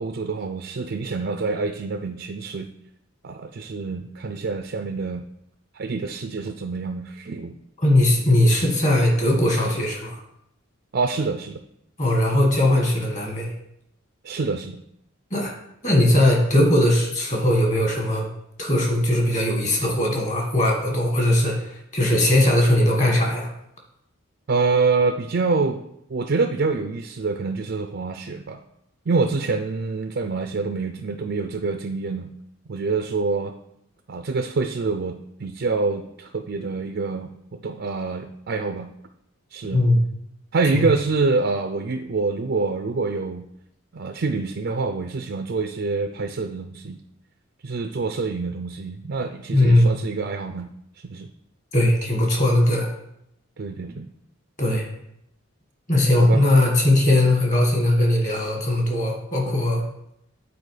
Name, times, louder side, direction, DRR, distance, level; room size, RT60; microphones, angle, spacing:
voice 1, 0.0-2.7 3.2-5.2 5.7-7.5 10.9-11.6 14.2-14.8 24.5-25.8 26.1-28.6 29.1-32.3 32.7-33.5 34.1-37.3 37.6-38.9 39.5-39.8 40.5-43.4 43.9-47.0 47.6-50.7 51.0-51.3 53.6-54.1 56.2-56.4, right 4 dB, 50° right, 7 dB, 0.4 m, -26 dB
voice 2, 7.8-10.2 12.0-13.5 15.3-15.5 15.8-18.3 18.6-23.5 39.7-40.0 40.6-40.8 49.5-49.9 51.7-52.9 54.6-54.9 55.9-59.8, left 1 dB, 35° left, 0 dB, 1.7 m, -19 dB
8.8 x 4.3 x 4.9 m, 0.77 s
head